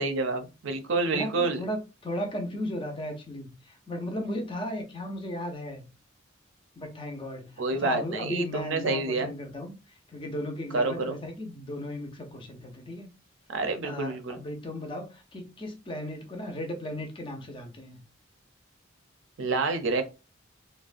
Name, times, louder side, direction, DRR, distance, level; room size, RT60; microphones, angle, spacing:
voice 1, 0.0-1.6 7.6-9.3 10.7-11.2 13.5-14.4 19.4-20.0, right 3 dB, 65° right, 0.5 m, -28 dB
voice 2, 1.1-5.9 6.8-9.7 10.1-13.1 13.8-18.0, left 1 dB, 25° left, 0.5 m, -35 dB
2.4 x 2.1 x 2.4 m
head